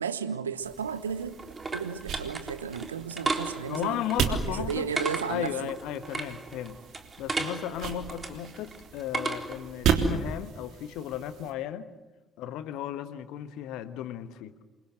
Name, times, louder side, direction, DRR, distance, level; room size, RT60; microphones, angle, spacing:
voice 1, 0.0-1.4 1.7-4.0 4.4-5.7, right 7 dB, 85° right, 1.1 m, -34 dB
sound 1, 0.6-11.5, right 7 dB, 60° right, 3.3 m, -34 dB
sound 2, 0.7-9.7, right 3 dB, 30° right, 3.8 m, -36 dB
voice 2, 3.6-4.9 5.3-6.8 7.2-11.9 12.4-14.5, left 11 dB, 65° left, 1.5 m, -35 dB
28.0 x 24.0 x 7.9 m
figure-of-eight pair, 45°, 0 cm